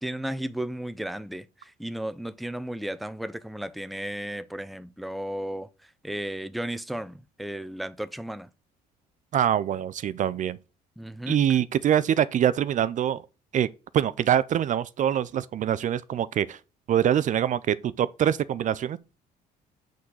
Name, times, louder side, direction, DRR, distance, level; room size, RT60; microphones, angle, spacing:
voice 1, 0.0-8.5 11.0-11.6, right 1 dB, ahead, 0.5 m, -34 dB
voice 2, 9.3-10.6 11.3-13.2 13.5-13.7 13.9-16.6 16.9-19.0, right 10 dB, 50° right, 0.5 m, -24 dB
8.4 x 3.9 x 6.2 m
cardioid pair, 110°, 17 cm